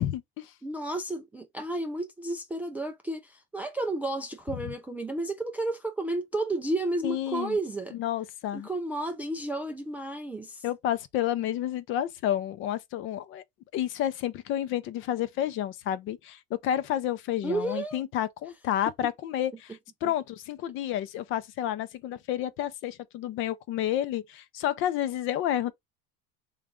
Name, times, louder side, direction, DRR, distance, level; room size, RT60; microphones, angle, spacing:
voice 1, 0.0-0.5 7.0-7.6 7.9-8.7 10.6-13.4 13.7-25.7, left 11 dB, 45° left, 0.6 m, -30 dB
voice 2, 0.6-8.0 8.5-10.6 17.4-18.0, right 2 dB, 5° right, 0.3 m, -32 dB
3.4 x 3.3 x 3.7 m
cardioid pair, 150°, 29 cm